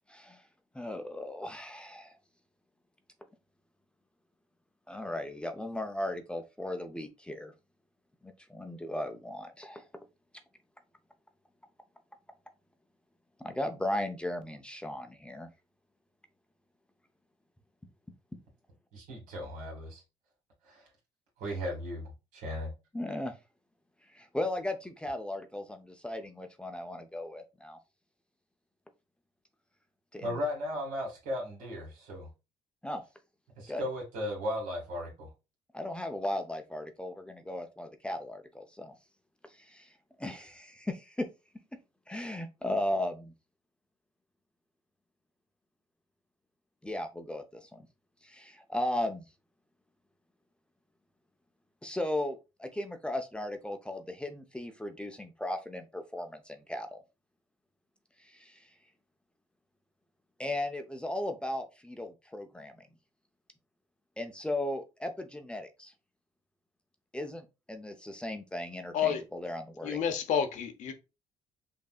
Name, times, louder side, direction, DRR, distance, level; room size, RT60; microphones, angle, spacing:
voice 1, 0.1-0.4 0.7-2.1 4.9-7.5 8.2-9.8 13.4-15.5 22.9-23.3 24.1-27.8 30.1-30.4 32.8-33.0 33.7-33.8 35.7-38.9 39.6-39.9 40.2-41.3 42.1-43.3 46.8-47.9 48.2-49.2 51.8-57.0 58.2-58.7 60.4-62.9 64.2-65.9 67.1-70.1, left 1 dB, 10° left, 0.5 m, -36 dB
voice 2, 18.9-20.0 20.7-20.9 21.4-22.0 22.3-22.7 30.2-32.3 33.6-35.3, left 1 dB, 80° right, 2.1 m, -36 dB
voice 3, 69.8-70.9, left 8 dB, 65° left, 0.8 m, -29 dB
5.2 x 2.7 x 2.4 m
cardioid pair, 90°, 13 cm